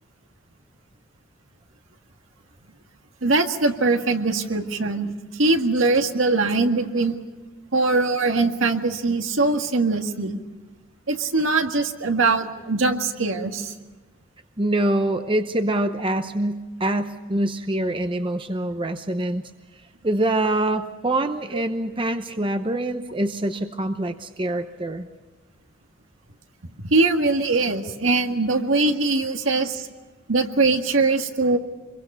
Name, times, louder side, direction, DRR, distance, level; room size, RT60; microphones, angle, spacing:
voice 1, 3.2-7.2 7.7-10.4 11.1-13.7 21.5-21.6 26.8-29.9 30.3-31.6, right 3 dB, 75° right, 5 dB, 1.9 m, -22 dB
voice 2, 14.6-19.4 20.0-25.1, right 1 dB, 25° right, 8 dB, 0.9 m, -25 dB
26.0 x 22.5 x 5.6 m, 1.3 s
head